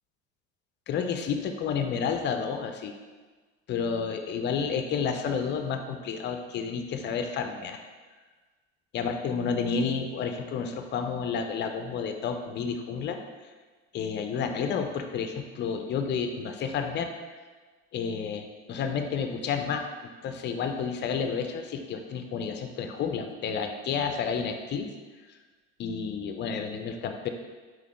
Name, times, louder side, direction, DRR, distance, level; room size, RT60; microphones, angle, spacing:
voice 1, 0.9-2.9 3.7-7.8 8.9-13.2 13.9-17.1 17.9-19.8 20.2-24.9 25.3-25.4 25.8-27.3, left 6 dB, 30° left, 6 dB, 0.4 m, -30 dB
3.9 x 3.0 x 3.1 m, 1.4 s
hypercardioid pair, 80°, 36 cm